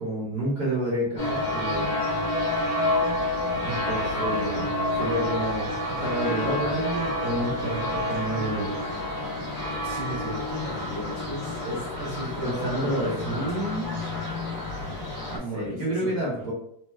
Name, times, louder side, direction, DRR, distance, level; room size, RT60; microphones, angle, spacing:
voice 1, 0.0-1.9 3.6-4.7 5.0-8.7 11.6-11.8 12.4-13.9 15.3-16.5, right 1 dB, 50° right, -5 dB, 1.2 m, -29 dB
sound 1, 1.2-15.4, left 1 dB, 40° left, 0.9 m, -29 dB
voice 2, 9.8-13.4 13.9-14.1 15.4-16.4, right 1 dB, 75° right, -8 dB, 1.6 m, -36 dB
4.3 x 2.0 x 2.3 m, 0.70 s
omnidirectional pair, 2.4 m